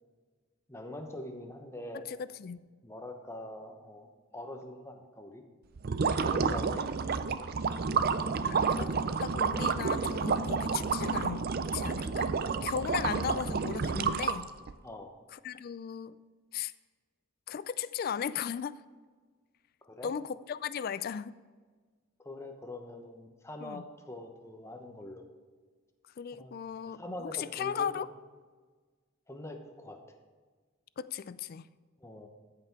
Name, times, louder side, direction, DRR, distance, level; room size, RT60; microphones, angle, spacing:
voice 1, 0.7-2.0 2.8-5.4 6.2-6.9 14.8-15.1 19.9-20.1 22.2-25.2 26.3-26.5 26.9-28.1 29.3-30.0 32.0-32.3, left 1 dB, 15° left, 4 dB, 0.9 m, -43 dB
voice 2, 1.9-2.7 8.4-8.9 9.2-11.5 11.7-12.3 12.6-14.5 15.3-16.2 16.5-16.7 17.5-18.8 20.0-21.4 23.6-23.8 26.2-28.1 31.0-31.7, left 7 dB, 45° left, 16 dB, 0.3 m, -36 dB
sound 1, 5.8-14.7, right 5 dB, 50° right, 0.4 m, -30 dB
14.0 x 5.8 x 4.6 m, 1.5 s
head